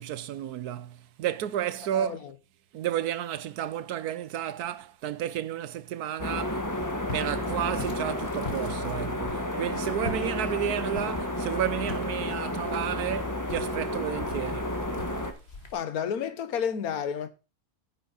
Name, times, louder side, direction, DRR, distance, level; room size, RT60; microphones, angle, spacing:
voice 1, 0.0-2.2 2.7-6.6 7.1-14.8, right 11 dB, 90° right, 1.2 m, -32 dB
sound 1, 6.2-15.3, left 1 dB, 15° left, 1.3 m, -31 dB
Walk footsteps, 6.6-15.7, left 4 dB, 45° left, 1.7 m, -44 dB
voice 2, 15.7-17.3, left 8 dB, 75° left, 1.5 m, -30 dB
10.0 x 8.9 x 4.0 m
omnidirectional pair, 1.6 m